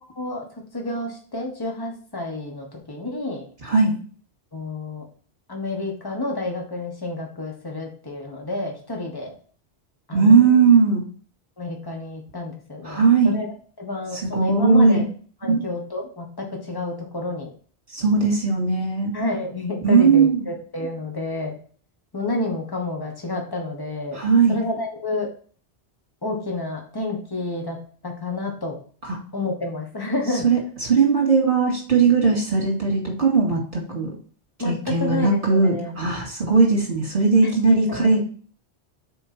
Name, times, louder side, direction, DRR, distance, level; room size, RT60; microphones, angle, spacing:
voice 1, 0.7-3.4 4.5-5.0 5.5-9.3 10.1-10.5 11.6-13.5 13.8-15.1 15.4-17.5 19.1-21.5 22.1-24.2 24.5-25.3 26.2-27.8 28.0-28.8 29.3-30.5 34.6-35.9 37.4-38.2, left 2 dB, 20° left, 1 dB, 1.4 m, -29 dB
voice 2, 3.6-3.9 10.1-11.0 12.8-13.4 14.2-15.1 15.5-15.6 17.9-19.1 19.8-20.4 24.1-24.6 29.1-29.2 30.4-30.6 30.9-34.1 34.6-38.2, right 4 dB, 50° right, -2 dB, 2.6 m, -18 dB
6.4 x 4.6 x 4.4 m, 0.44 s
omnidirectional pair, 1.2 m